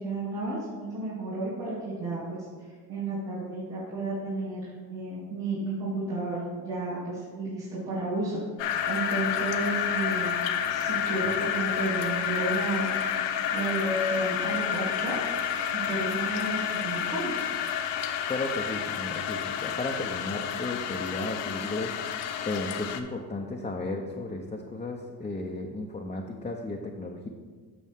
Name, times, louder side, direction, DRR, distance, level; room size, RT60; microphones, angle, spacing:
voice 1, 0.0-2.4 2.9-12.9 13.3-15.2 15.7-17.5, right 2 dB, 90° right, -11 dB, 2.4 m, -32 dB
sound 1, 8.6-23.0, left 8 dB, 60° left, 0.8 m, -30 dB
sound 2, 11.9-22.7, left 3 dB, 20° right, 1.5 m, -40 dB
voice 2, 18.3-27.3, left 2 dB, 15° left, -1 dB, 0.7 m, -34 dB
8.5 x 6.3 x 3.6 m, 1.5 s
hypercardioid pair, 65°, 49 cm